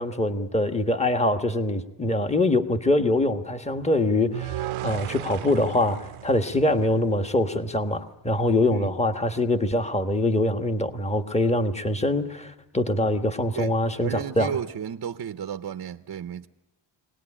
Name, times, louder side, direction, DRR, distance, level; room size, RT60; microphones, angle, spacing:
voice 1, 0.0-14.6, left 1 dB, 15° left, 1.4 m, -24 dB
sound 1, 4.3-7.5, right 13 dB, 75° right, 0.8 m, -36 dB
voice 2, 14.0-16.5, right 8 dB, 45° right, 0.7 m, -33 dB
23.5 x 18.5 x 9.9 m
cardioid pair, 100°, 50 cm